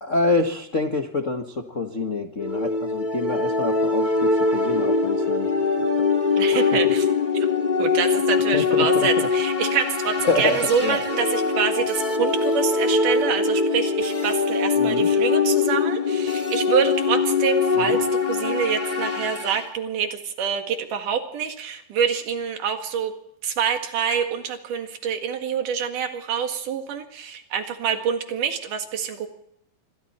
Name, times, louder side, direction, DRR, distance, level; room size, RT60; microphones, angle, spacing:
voice 1, 0.0-5.5 5.8-5.9 6.5-6.9 8.5-9.3 10.3-11.0 14.8-15.1 17.8-18.0, left 3 dB, 60° left, 5 dB, 0.8 m, -26 dB
sound 1, 2.4-19.7, left 4 dB, 20° left, 1.5 m, -22 dB
voice 2, 6.4-7.1 7.8-23.1 23.4-29.3, right 7 dB, 70° right, 5 dB, 3.4 m, -26 dB
27.0 x 23.5 x 4.3 m, 0.77 s
omnidirectional pair, 3.9 m